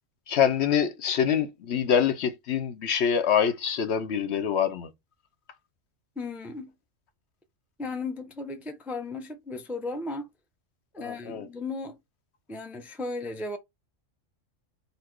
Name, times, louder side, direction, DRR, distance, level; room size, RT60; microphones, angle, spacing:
voice 1, 0.3-4.9 11.0-11.5, left 8 dB, 65° left, 0.9 m, -25 dB
voice 2, 6.2-6.7 7.8-10.3 10.9-12.0 12.5-13.6, left 3 dB, ahead, 0.4 m, -35 dB
4.1 x 2.6 x 4.5 m
omnidirectional pair, 1.3 m